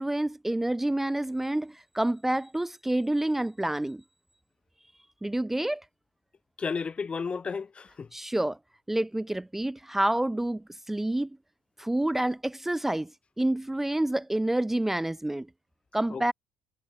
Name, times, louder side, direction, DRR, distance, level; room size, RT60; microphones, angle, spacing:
voice 1, 0.0-4.0 5.2-5.8 8.1-8.6 8.9-11.3 11.8-13.1 13.4-15.5 15.9-16.3, right 1 dB, 10° right, 0.3 m, -28 dB
voice 2, 6.6-8.1 16.1-16.3, left 5 dB, 30° left, 1.8 m, -33 dB
supercardioid pair, 85°, 4 cm